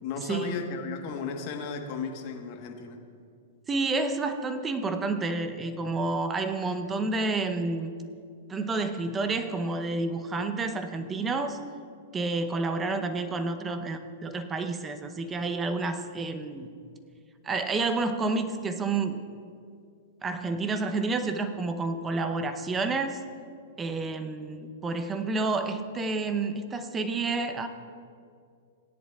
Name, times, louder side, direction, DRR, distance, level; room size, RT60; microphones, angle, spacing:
voice 1, 0.0-3.0, left 5 dB, 50° left, 3 dB, 1.3 m, -35 dB
voice 2, 3.7-7.9 8.5-11.6 12.1-16.7 17.4-19.2 20.2-23.2 23.8-27.7, right 3 dB, 20° right, 8 dB, 0.8 m, -29 dB
17.5 x 10.5 x 2.4 m, 2.3 s
hypercardioid pair, 120°, 0 cm